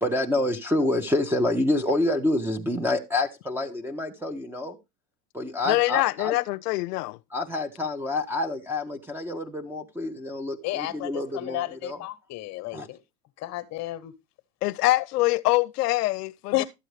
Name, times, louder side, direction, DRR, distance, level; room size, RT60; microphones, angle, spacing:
voice 1, 0.0-4.8 5.3-6.3 7.3-12.0 12.7-12.9, left 2 dB, 5° right, 0.5 m, -27 dB
voice 2, 5.7-7.2 14.6-16.6, left 19 dB, 85° left, 0.6 m, -24 dB
voice 3, 10.6-13.0 13.4-14.1 16.5-16.7, left 16 dB, 35° left, 1.1 m, -31 dB
12.5 x 7.9 x 3.2 m
supercardioid pair, 130°, 45 cm